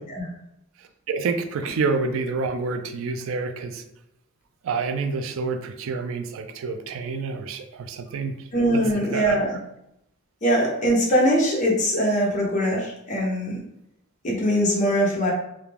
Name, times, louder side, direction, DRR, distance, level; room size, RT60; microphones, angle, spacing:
voice 1, 1.1-3.8 4.6-8.4 8.7-8.8 9.1-9.4, right 4 dB, 65° right, 7 dB, 0.3 m, -28 dB
voice 2, 8.5-9.6 10.4-13.6 14.2-15.3, equal, 35° left, -2 dB, 0.7 m, -22 dB
2.3 x 2.2 x 3.1 m, 0.81 s
head